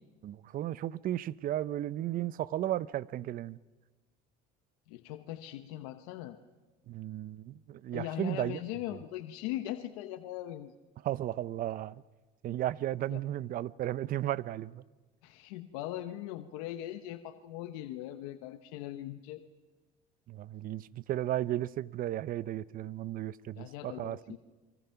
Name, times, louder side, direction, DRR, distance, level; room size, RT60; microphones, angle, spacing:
voice 1, 0.2-3.6 6.9-8.6 11.0-12.0 12.4-14.8 20.3-24.4, right 13 dB, 50° right, 0.7 m, -34 dB
voice 2, 4.9-6.4 7.9-10.7 13.1-13.2 15.2-19.4 23.5-24.4, left 13 dB, 85° left, 1.1 m, -40 dB
29.5 x 24.0 x 5.8 m
supercardioid pair, 105°, 18 cm